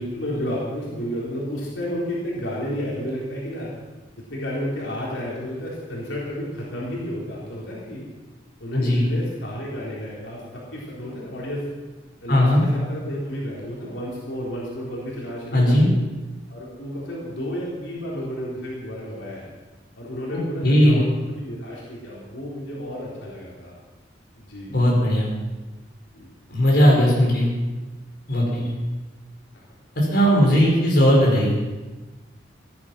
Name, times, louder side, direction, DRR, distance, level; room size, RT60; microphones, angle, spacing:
voice 1, 0.0-3.7 4.3-8.0 8.6-11.7 12.2-15.9 16.5-19.5 20.0-23.7 24.3-24.8 26.1-26.3 28.5-28.8 29.5-29.6, equal, 90° left, -5 dB, 4.0 m, -31 dB
voice 2, 8.7-9.1 12.3-12.6 15.5-15.9 20.3-21.0 24.7-25.3 26.5-27.5 28.3-28.7 30.0-31.6, equal, 55° left, -3 dB, 5.1 m, -18 dB
17.5 x 11.0 x 6.1 m, 1.2 s
head